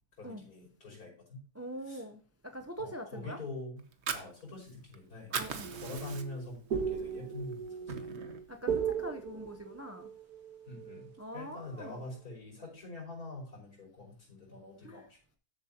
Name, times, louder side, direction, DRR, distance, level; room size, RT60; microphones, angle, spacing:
voice 1, 0.2-1.4 1.9-2.0 2.8-3.8 4.1-5.3 5.8-8.1 10.7-15.2, left 2 dB, 65° left, 6.0 m, -45 dB
voice 2, 1.5-3.4 5.3-5.7 8.5-10.1 11.2-12.0 14.8-15.0, right 1 dB, 20° right, 0.3 m, -43 dB
Fire, 3.8-4.9 5.2-6.6 7.0-7.1 7.5-8.5, right 6 dB, 50° right, 1.1 m, -38 dB
sound 1, 5.6-11.3, right 7 dB, 70° right, 1.8 m, -37 dB
13.5 x 7.6 x 2.9 m
omnidirectional pair, 1.7 m